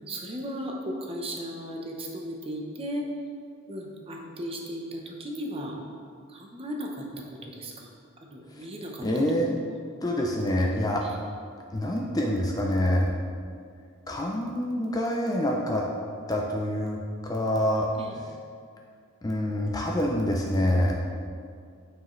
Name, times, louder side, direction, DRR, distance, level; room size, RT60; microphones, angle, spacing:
voice 1, 0.1-3.1 3.7-5.8 6.3-7.9 8.3-9.5 11.0-11.1 18.0-18.2, equal, 25° right, 0 dB, 0.7 m, -36 dB
voice 2, 9.0-9.5 10.0-11.0 11.7-13.1 14.1-15.8 16.3-17.9 19.2-20.9, left 1 dB, 15° left, -1 dB, 0.4 m, -26 dB
9.1 x 4.7 x 3.1 m, 2.2 s
head